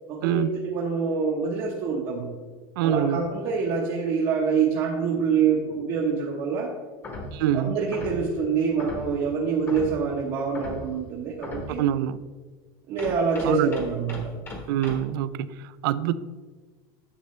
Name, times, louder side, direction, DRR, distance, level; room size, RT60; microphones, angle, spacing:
voice 1, 0.1-2.3 2.8-6.7 7.5-11.8 12.9-14.3, right 5 dB, 40° right, -3 dB, 1.0 m, -26 dB
voice 2, 2.8-3.2 7.3-7.8 11.8-12.2 13.4-13.8 14.7-16.1, right 11 dB, 65° right, 16 dB, 0.4 m, -25 dB
sound 1, 7.0-7.4 7.9-8.3 8.8-9.2 9.7-10.1 10.5-10.9 11.4-11.8 13.0-15.0, left 2 dB, 20° left, 1.1 m, -37 dB
9.7 x 6.6 x 3.2 m, 1.4 s
supercardioid pair, 170°, 12 cm